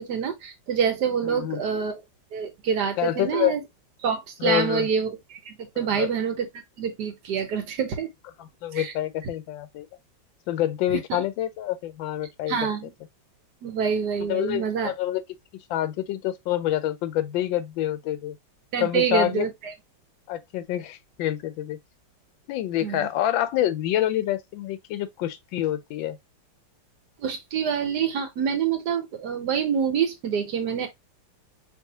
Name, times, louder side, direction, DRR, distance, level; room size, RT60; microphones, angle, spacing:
voice 1, 0.0-2.0 2.3-3.6 4.0-5.2 5.5-6.4 6.8-8.1 8.7-8.9 11.1-11.2 12.5-12.9 13.6-14.9 18.7-19.7 22.8-23.0 27.2-30.9, right 7 dB, 65° right, 1.3 m, -26 dB
voice 2, 1.2-1.6 3.0-3.6 4.4-4.9 5.8-6.1 8.4-9.9 10.5-12.7 14.2-15.2 15.7-18.4 18.8-19.5 20.3-21.8 22.5-26.2, left 13 dB, 85° left, 1.3 m, -27 dB
4.7 x 2.7 x 2.7 m
omnidirectional pair, 2.0 m